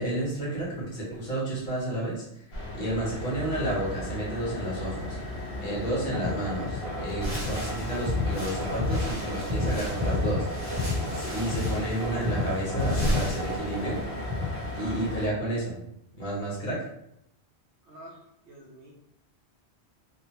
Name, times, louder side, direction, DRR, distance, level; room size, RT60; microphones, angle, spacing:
voice 1, 0.0-2.4 2.7-5.3 5.6-10.7 11.1-14.0 14.7-15.8 16.1-16.8, right 1 dB, 50° left, -5 dB, 1.1 m, -31 dB
sound 1, 2.5-15.3, left 1 dB, 70° left, 1.1 m, -36 dB
sound 2, 6.1-15.0, left 2 dB, 25° right, 0.7 m, -31 dB
sound 3, 7.1-14.0, equal, 15° left, 1.5 m, -37 dB
voice 2, 14.8-15.3 17.8-18.2 18.5-18.9, right 1 dB, 85° right, -4 dB, 0.9 m, -48 dB
3.1 x 2.2 x 2.8 m, 0.79 s
omnidirectional pair, 1.1 m